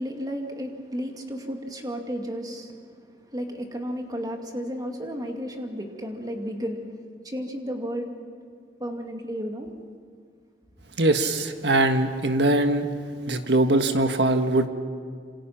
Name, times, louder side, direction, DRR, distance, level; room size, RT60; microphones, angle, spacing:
voice 1, 0.0-6.9 7.2-8.1 8.8-9.7, equal, 20° right, 3 dB, 2.4 m, -33 dB
voice 2, 11.0-12.9 13.3-14.7, right 2 dB, 75° right, 7 dB, 1.6 m, -21 dB
27.0 x 26.5 x 5.9 m, 2.1 s
head